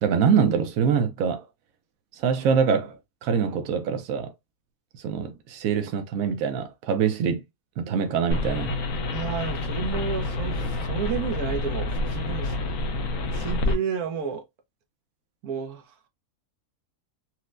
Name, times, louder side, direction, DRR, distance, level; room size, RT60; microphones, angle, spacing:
voice 1, 0.0-1.5 2.1-4.3 5.0-7.4 7.8-8.8, right 6 dB, 75° right, 1.0 m, -24 dB
sound 1, 8.3-13.7, left 2 dB, 70° left, 1.0 m, -28 dB
voice 2, 9.1-12.6 13.3-14.5 15.4-16.1, right 6 dB, 90° right, 1.2 m, -31 dB
4.3 x 2.0 x 2.4 m
omnidirectional pair, 1.5 m